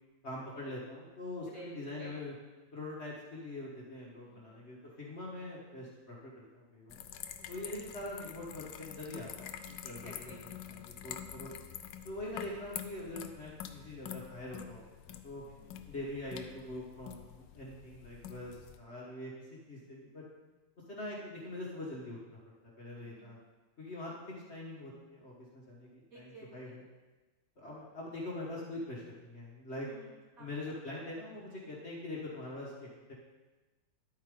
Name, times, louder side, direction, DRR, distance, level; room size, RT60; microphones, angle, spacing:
voice 1, 0.2-2.3 2.7-7.0 7.5-10.3 10.6-11.5 12.0-15.4 15.9-20.2 20.9-22.4 22.8-23.4 23.8-26.8 27.6-29.9 30.4-33.1, left 1 dB, 40° left, -5 dB, 1.7 m, -43 dB
voice 2, 1.5-2.1 4.2-4.7 7.1-7.5 9.8-10.4 15.4-15.8 22.9-23.4 26.1-26.8 29.8-30.5, right 2 dB, 50° right, -7 dB, 3.6 m, -54 dB
sound 1, 6.9-18.8, left 9 dB, 80° left, 1.3 m, -47 dB
11.0 x 8.6 x 3.8 m, 1.2 s
omnidirectional pair, 2.0 m